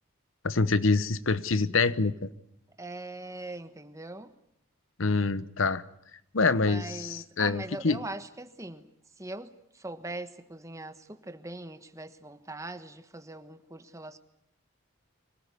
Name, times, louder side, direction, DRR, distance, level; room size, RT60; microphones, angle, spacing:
voice 1, 0.4-2.3 5.0-5.8 6.3-8.0, left 4 dB, 70° left, 15 dB, 1.0 m, -26 dB
voice 2, 2.8-4.3 6.6-8.9 9.2-14.2, right 2 dB, 15° right, 9 dB, 1.3 m, -41 dB
25.0 x 18.0 x 9.7 m, 0.76 s
head